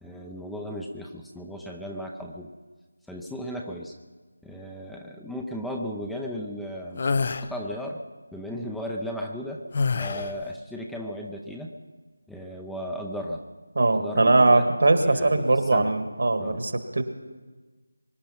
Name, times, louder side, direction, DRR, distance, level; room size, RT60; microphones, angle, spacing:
voice 1, 0.0-2.5 3.1-3.9 4.4-8.0 8.3-9.6 10.0-11.7 12.3-13.4 13.9-14.7 15.0-15.9 16.4-16.6, equal, ahead, 0 dB, 0.7 m, -35 dB
sound 1, 7.0-7.5 9.7-10.4, left 4 dB, 40° left, 0.7 m, -26 dB
voice 2, 13.7-17.0, right 2 dB, 60° right, 8 dB, 1.8 m, -21 dB
23.5 x 10.5 x 5.7 m, 1.3 s
figure-of-eight pair, 165°, 0 cm